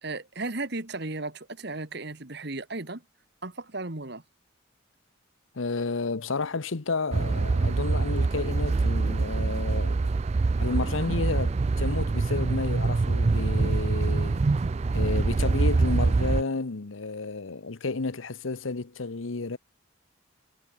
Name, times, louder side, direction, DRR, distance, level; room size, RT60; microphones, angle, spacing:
voice 1, 0.0-3.0 3.4-4.2, right 2 dB, 55° right, 1.9 m, -35 dB
voice 2, 5.5-10.1 10.6-14.4 14.9-19.6, left 3 dB, 75° left, 0.9 m, -31 dB
sound 1, 7.1-16.4, right 3 dB, 35° right, 0.3 m, -25 dB
head